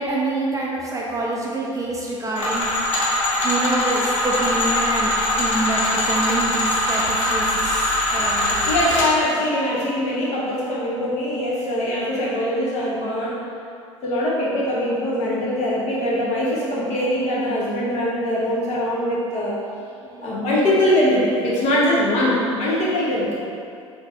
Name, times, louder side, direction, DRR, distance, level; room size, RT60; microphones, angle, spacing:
voice 1, 0.0-2.7 3.4-8.7 20.0-20.4, right 2 dB, 20° right, -4 dB, 0.4 m, -26 dB
sound 1, 2.4-9.1, left 1 dB, 75° left, 0.7 m, -22 dB
voice 2, 8.4-13.4 14.0-19.6 20.2-23.4, left 1 dB, 45° left, -7 dB, 1.0 m, -22 dB
3.2 x 2.7 x 3.6 m, 2.5 s
figure-of-eight pair, 70°, 17 cm